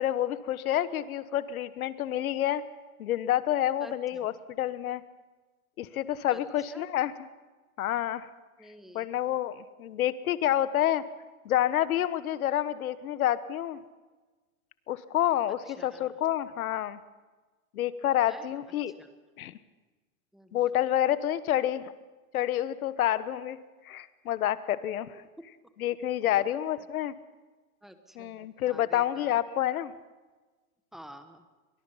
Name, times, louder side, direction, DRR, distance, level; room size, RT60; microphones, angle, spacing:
voice 1, 0.0-2.6 3.0-5.0 5.8-7.1 7.8-8.3 8.9-11.0 11.4-13.8 14.9-17.0 17.7-18.9 19.4-19.5 20.5-21.9 22.3-23.6 23.8-25.2 25.8-27.1 28.2-29.9, left 12 dB, 80° left, 15 dB, 1.3 m, -28 dB
voice 2, 3.8-4.2 6.3-6.4 6.7-6.9 8.6-9.1 15.5-16.1 18.3-18.5 18.9-19.1 20.3-20.6 25.1-25.2 26.3-26.4 27.8-29.4 30.9-31.5, equal, ahead, 8 dB, 1.0 m, -50 dB
23.5 x 21.0 x 5.7 m, 1.3 s
supercardioid pair, 155°, 42 cm